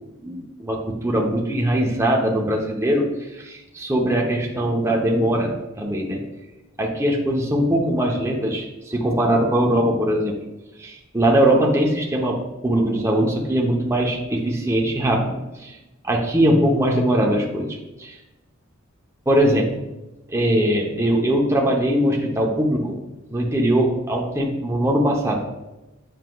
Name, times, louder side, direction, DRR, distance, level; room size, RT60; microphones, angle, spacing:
voice 1, 0.2-5.5 5.8-6.2 6.8-10.3 10.8-15.8 16.0-18.1 19.3-19.8 20.3-23.0 23.3-25.4, right 1 dB, 15° right, -1 dB, 0.8 m, -21 dB
7.7 x 6.3 x 2.3 m, 1.0 s
head